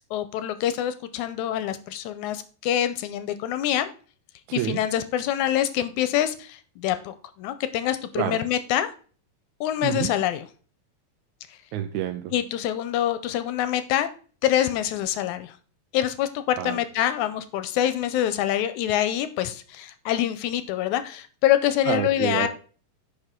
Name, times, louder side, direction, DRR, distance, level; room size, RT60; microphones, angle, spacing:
voice 1, 0.1-3.9 4.5-8.9 9.6-10.5 12.3-14.1 14.4-15.6 15.9-22.5, left 11 dB, 80° left, 11 dB, 1.9 m, -25 dB
voice 2, 11.7-12.3 16.6-16.8 21.9-22.5, right 11 dB, 80° right, 6 dB, 1.9 m, -28 dB
9.8 x 4.7 x 3.7 m, 0.41 s
omnidirectional pair, 3.7 m